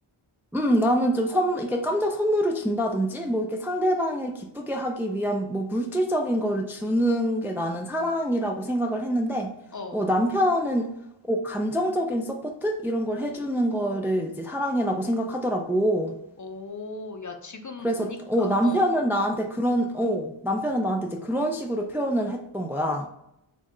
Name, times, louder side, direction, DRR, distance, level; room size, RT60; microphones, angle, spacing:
voice 1, 0.5-9.5 9.9-10.9 11.3-16.1 17.8-23.1, equal, 5° right, 2 dB, 0.4 m, -25 dB
voice 2, 16.4-18.8, left 3 dB, 40° left, 5 dB, 0.6 m, -38 dB
4.3 x 2.4 x 3.0 m, 0.80 s
wide cardioid pair, 50°, 50 cm